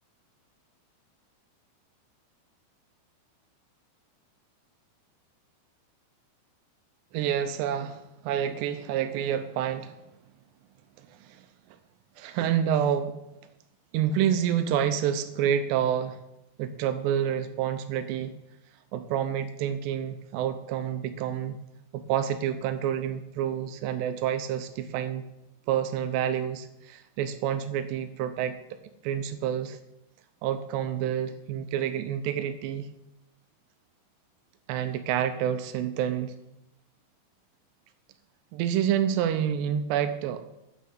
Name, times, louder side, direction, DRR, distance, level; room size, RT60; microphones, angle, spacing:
voice 1, 7.1-10.0 11.2-11.5 12.2-13.2 13.9-16.2 16.6-18.3 18.9-21.6 21.9-25.3 25.7-28.6 29.0-29.8 30.4-32.9 34.7-36.3 38.5-40.5, right 9 dB, 85° right, 10 dB, 2.5 m, -28 dB
9.4 x 6.2 x 6.9 m, 0.89 s
omnidirectional pair, 5.2 m